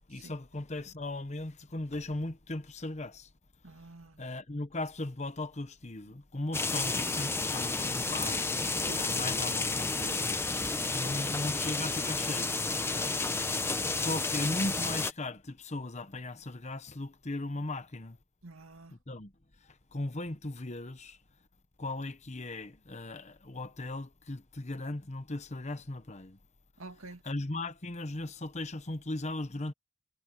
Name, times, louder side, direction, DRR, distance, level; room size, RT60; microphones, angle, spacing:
voice 1, 0.1-3.3 4.2-8.4 8.9-10.5 10.9-12.5 12.8-13.2 13.9-18.2 19.1-19.3 19.9-21.2 21.8-26.4 27.2-29.7, left 2 dB, 35° left, 1.1 m, -37 dB
voice 2, 3.6-4.2 8.8-9.0 18.4-19.0 26.8-27.2, right 3 dB, 75° right, 2.3 m, -48 dB
sound 1, 6.5-15.1, left 3 dB, 10° left, 0.9 m, -31 dB
head